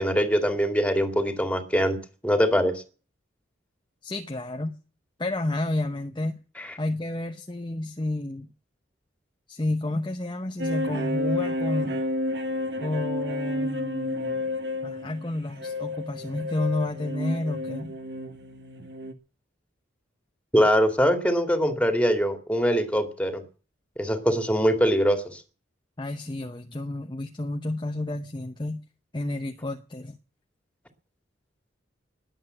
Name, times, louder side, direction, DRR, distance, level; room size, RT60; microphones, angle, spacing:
voice 1, 0.0-2.8 6.6-6.7 20.5-23.4 24.0-25.4, equal, 5° left, 2.3 m, -23 dB
voice 2, 4.0-4.8 5.2-6.4 6.8-8.5 9.5-12.0 12.8-14.5 14.8-17.9 26.0-28.8 29.1-30.2, left 2 dB, 25° left, 0.8 m, -30 dB
sound 1, 10.6-19.1, left 1 dB, 55° right, 1.7 m, -31 dB
20.5 x 8.1 x 7.8 m
head